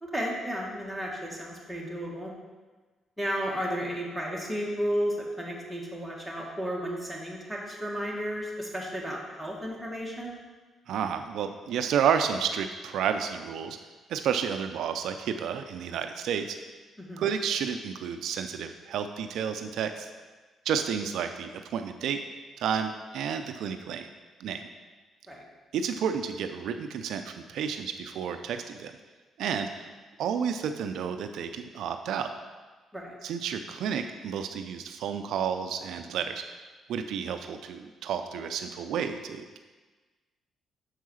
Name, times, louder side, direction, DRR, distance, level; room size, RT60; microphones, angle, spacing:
voice 1, 0.0-2.3 3.2-10.4 17.0-17.2 25.3-25.4 32.9-33.2, equal, ahead, -3 dB, 1.8 m, -33 dB
voice 2, 10.9-13.8 14.1-16.6 17.2-20.1 20.7-22.2 22.6-24.1 24.4-24.6 25.7-28.9 29.4-29.9 30.2-32.3 33.2-36.4 36.9-39.6, right 7 dB, 75° right, 7 dB, 0.4 m, -31 dB
6.4 x 4.6 x 6.3 m, 1.3 s
cardioid pair, 90°, 0 cm